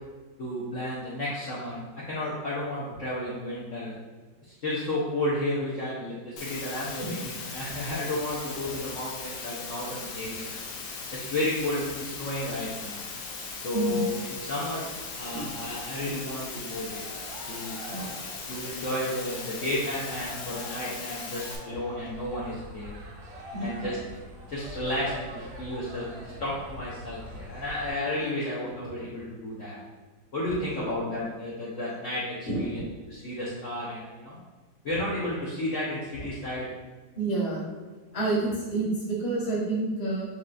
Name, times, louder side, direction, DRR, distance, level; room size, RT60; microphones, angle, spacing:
voice 1, 0.4-3.9 4.4-10.5 11.1-13.0 13.5-14.1 14.4-14.9 15.2-17.2 17.5-18.1 18.5-22.9 23.6-24.0 24.5-29.8 30.3-34.4 34.8-36.7, left 1 dB, 55° left, -8 dB, 1.0 m, -32 dB
Water, 6.4-21.6, left 4 dB, 80° left, 1.4 m, -38 dB
voice 2, 13.7-14.0 15.3-15.6 17.9-18.1 23.5-23.9 30.5-30.9 32.5-32.6 37.1-37.6 38.1-40.2, right 3 dB, 25° left, -6 dB, 1.0 m, -29 dB
Cheering, 16.5-28.3, right 1 dB, 80° right, 0.5 m, -47 dB
Insect, 21.9-27.9, left 1 dB, ahead, 0.8 m, -45 dB
6.6 x 3.0 x 2.5 m, 1.3 s
omnidirectional pair, 2.0 m